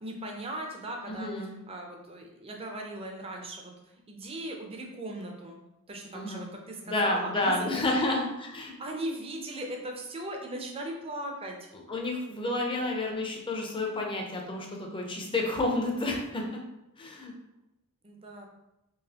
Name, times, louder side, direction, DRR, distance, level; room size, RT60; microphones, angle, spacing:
voice 1, 0.0-1.3 1.7-5.6 5.9-8.2 8.8-11.6 12.7-12.8 18.0-18.5, right 1 dB, 25° right, 1 dB, 0.6 m, -38 dB
voice 2, 1.1-1.5 6.1-6.4 6.8-8.7 11.9-16.6 17.0-17.3, left 2 dB, 25° left, 0 dB, 0.6 m, -30 dB
4.0 x 3.1 x 2.8 m, 0.91 s
head